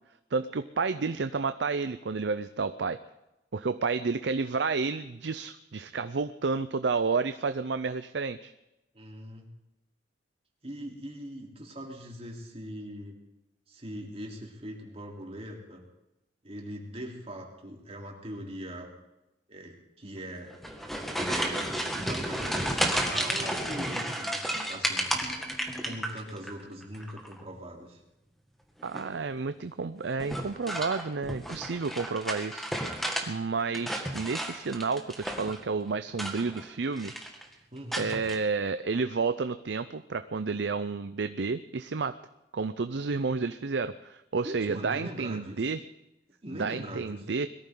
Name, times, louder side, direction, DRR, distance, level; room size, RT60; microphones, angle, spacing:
voice 1, 0.3-3.0 3.5-8.5 28.8-33.0 33.3-37.1 38.0-42.2 42.5-45.8 46.6-47.5, right 4 dB, 75° right, 11 dB, 0.6 m, -31 dB
voice 2, 8.9-9.5 10.6-13.2 13.7-15.8 16.4-18.9 19.5-20.5 21.1-25.1 25.8-28.0 37.7-38.1 44.4-45.7 46.4-47.3, equal, 35° right, -1 dB, 3.7 m, -41 dB
sound 1, 20.5-26.5 26.8-27.4 28.8-29.2 30.2-33.3 33.6-35.6 36.1-36.7 37.0-37.4 37.9-38.4, equal, ahead, 2.0 m, -32 dB
22.0 x 14.0 x 3.9 m, 0.93 s
head